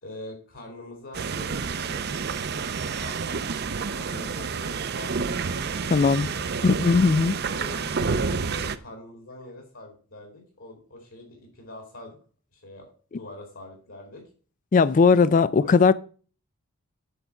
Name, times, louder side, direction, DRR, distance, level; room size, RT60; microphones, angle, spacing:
voice 1, 0.0-2.1 2.7-5.3 5.6-6.6 7.5-12.2 12.5-14.2 15.6-15.8, left 1 dB, 65° left, 2.6 m, -44 dB
sound 1, 1.1-8.8, right 5 dB, 45° right, 0.5 m, -29 dB
voice 2, 5.9-6.3 6.6-7.4 14.7-15.9, left 4 dB, 35° left, 0.3 m, -18 dB
8.5 x 5.1 x 6.8 m
head